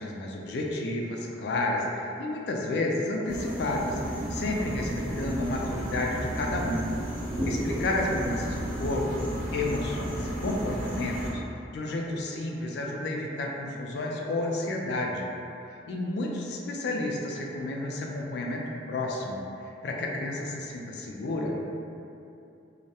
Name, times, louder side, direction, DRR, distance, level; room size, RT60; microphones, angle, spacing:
voice 1, 0.0-6.9 7.4-9.1 9.5-11.4 11.7-15.3 15.9-19.4 19.8-21.6, left 2 dB, 65° left, -1 dB, 0.3 m, -31 dB
sound 1, 3.3-11.3, right 1 dB, 45° right, 0.9 m, -33 dB
2.2 x 2.0 x 2.8 m, 2.7 s
head